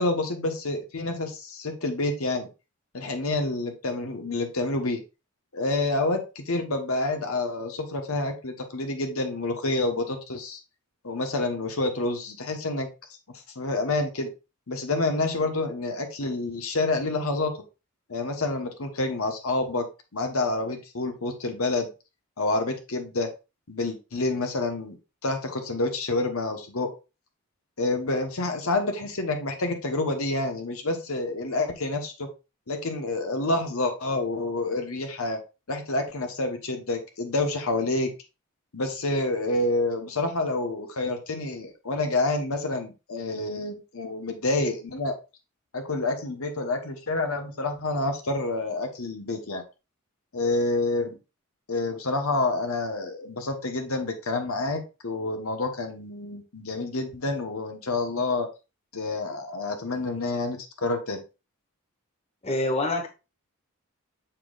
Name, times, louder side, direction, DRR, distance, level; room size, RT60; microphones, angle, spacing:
voice 1, 0.0-2.5 2.9-5.0 5.5-10.6 11.0-12.9 13.5-14.3 14.7-17.5 18.1-19.9 20.1-21.9 22.4-23.3 23.7-25.0 25.2-26.9 27.8-32.3 32.7-35.4 35.7-38.1 38.7-45.1 45.7-49.6 50.3-51.2 51.7-58.5 58.9-61.2, left 2 dB, 75° left, 1.2 m, -28 dB
voice 2, 62.4-63.1, left 2 dB, 30° left, 1.2 m, -25 dB
6.9 x 5.9 x 2.5 m
head